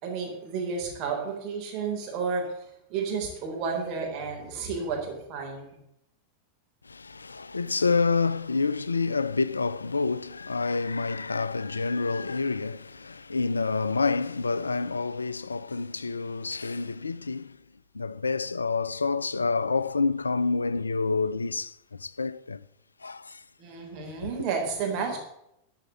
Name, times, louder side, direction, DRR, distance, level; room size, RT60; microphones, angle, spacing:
voice 1, 0.0-2.5 2.9-5.7 23.6-25.2, right 5 dB, 40° right, 3.9 m, -31 dB
voice 2, 6.8-17.6 17.9-22.6 23.0-23.4, left 4 dB, 75° left, 0.4 m, -28 dB
13.0 x 5.7 x 8.4 m
figure-of-eight pair, 90°, 0 cm